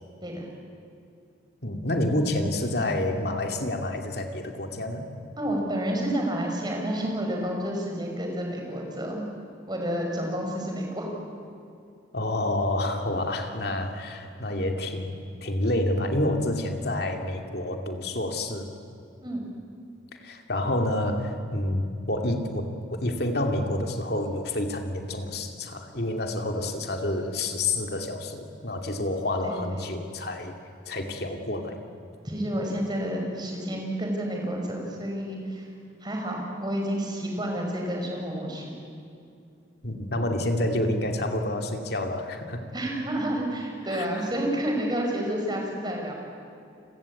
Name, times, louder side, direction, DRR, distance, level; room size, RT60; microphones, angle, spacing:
voice 1, 1.6-5.1 12.1-15.1 15.4-18.7 20.2-30.5 30.9-31.8 39.8-42.6 43.9-44.2, left 1 dB, 55° left, 4 dB, 2.6 m, -28 dB
voice 2, 5.4-9.3 9.7-11.2 19.2-19.4 29.4-29.8 32.2-35.7 36.0-38.7 42.7-46.1, right 1 dB, 20° right, 1 dB, 5.4 m, -30 dB
29.5 x 22.0 x 8.5 m, 2.4 s
head